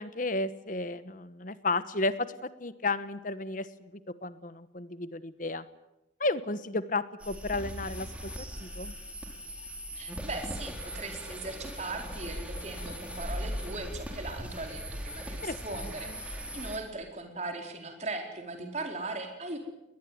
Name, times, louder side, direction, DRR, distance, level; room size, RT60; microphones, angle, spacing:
voice 1, 0.0-3.9 4.2-5.6 6.2-8.9 15.4-16.2, left 2 dB, 45° left, 14 dB, 1.2 m, -33 dB
sound 1, 7.2-16.8, equal, 5° right, 4.3 m, -39 dB
voice 2, 10.0-19.6, right 2 dB, 35° right, 3 dB, 4.3 m, -39 dB
21.5 x 20.0 x 9.5 m, 0.92 s
head